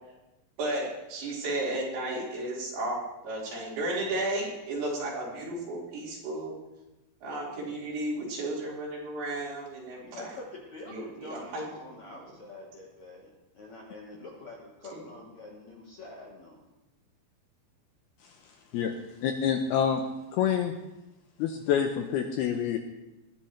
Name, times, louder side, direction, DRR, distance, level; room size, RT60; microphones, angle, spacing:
voice 1, 0.6-6.5 7.2-10.3 10.9-11.7 14.9-15.0, right 2 dB, 75° right, -6 dB, 6.9 m, -33 dB
voice 2, 10.1-16.7, left 2 dB, 60° left, -2 dB, 1.9 m, -46 dB
voice 3, 19.2-20.0 20.3-20.7 21.4-22.8, left 8 dB, 80° left, 5 dB, 2.4 m, -27 dB
20.0 x 14.5 x 3.3 m, 0.99 s
omnidirectional pair, 5.3 m